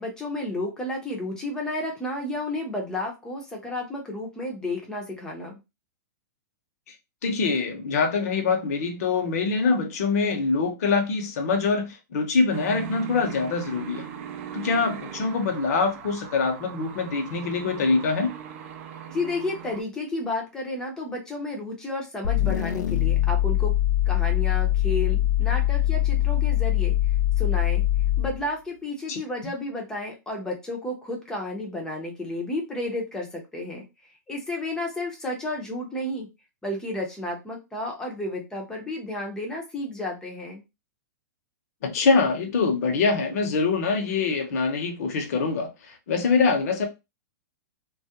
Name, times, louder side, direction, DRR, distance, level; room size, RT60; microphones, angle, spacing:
voice 1, 0.0-5.6 19.1-23.7 24.1-26.9 27.4-27.8 28.2-33.8 34.3-36.3 36.6-40.6, left 1 dB, 5° left, 0.6 m, -32 dB
voice 2, 7.2-14.0 14.5-18.3 29.1-29.2 41.8-46.9, left 4 dB, 55° left, 0.8 m, -24 dB
sound 1, 12.5-19.8, right 9 dB, 45° right, 0.4 m, -39 dB
sound 2, 22.2-28.4, left 13 dB, 75° left, 0.4 m, -23 dB
2.3 x 2.0 x 2.8 m
hypercardioid pair, 160°, 10 cm